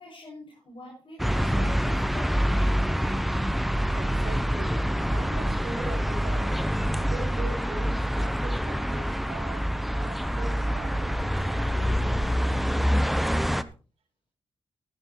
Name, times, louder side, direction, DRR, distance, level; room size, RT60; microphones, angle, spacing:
voice 1, 0.0-2.9, left 1 dB, 55° left, -3 dB, 6.7 m, -45 dB
sound 1, 1.2-13.6, equal, ahead, 0.8 m, -26 dB
voice 2, 4.0-6.6 7.0-9.6 9.9-12.2, right 3 dB, 70° right, 2 dB, 4.6 m, -41 dB
14.5 x 10.5 x 3.1 m, 0.35 s
cardioid pair, 55°, 11 cm